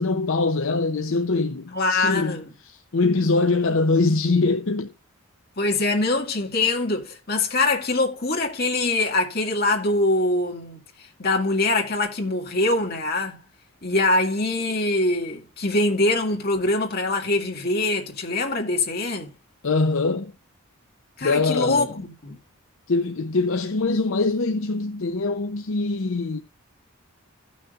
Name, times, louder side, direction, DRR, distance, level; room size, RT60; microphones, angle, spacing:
voice 1, 0.0-2.4 2.6-4.9 19.6-20.3 21.2-22.0 22.9-26.4, left 3 dB, 65° left, 0.7 m, -23 dB
voice 2, 1.7-2.5 5.6-10.8 11.2-13.4 13.8-19.3 21.2-22.4, left 2 dB, 45° left, 2.2 m, -23 dB
16.0 x 6.2 x 2.5 m
head